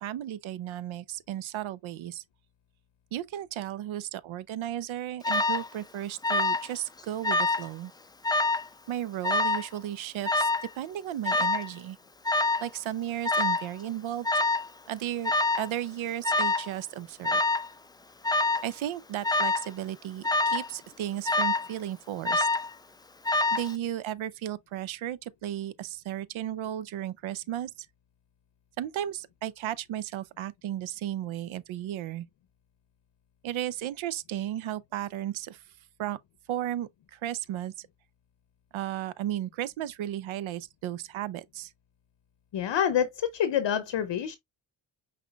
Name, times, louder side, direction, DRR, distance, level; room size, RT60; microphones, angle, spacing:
voice 1, 0.0-2.2 3.1-7.9 8.9-10.5 10.8-12.0 12.6-14.3 14.9-15.3 15.6-17.4 18.6-22.5 23.5-27.7 28.8-32.3 33.4-35.6 36.0-36.2 36.5-37.9 38.7-41.7, right 12 dB, 75° right, 0.6 m, -34 dB
Alarm, 5.2-5.7 6.2-6.7 7.0-7.7 8.2-8.7 9.2-9.7 10.2-10.7 11.2-11.7 12.2-12.7 13.2-13.7 14.2-14.7 15.2-15.7 16.2-16.7 17.2-17.7 18.2-18.7 19.2-19.7 20.2-20.7 21.2-21.7 22.2-22.7 23.2-23.7, left 2 dB, 10° left, 0.3 m, -26 dB
voice 2, 42.5-44.4, left 9 dB, 60° left, 0.7 m, -27 dB
5.6 x 3.7 x 2.3 m
cardioid pair, 70°, 48 cm